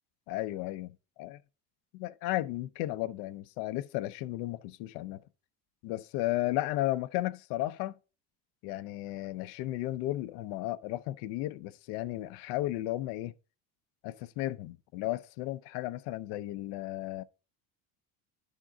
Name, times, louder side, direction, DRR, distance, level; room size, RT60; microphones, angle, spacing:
voice 1, 0.3-1.4 1.9-5.2 5.8-8.0 8.6-13.3 14.0-17.2, left 16 dB, 70° left, 0.6 m, -34 dB
10.0 x 3.7 x 3.7 m
cardioid pair, 165°, 43 cm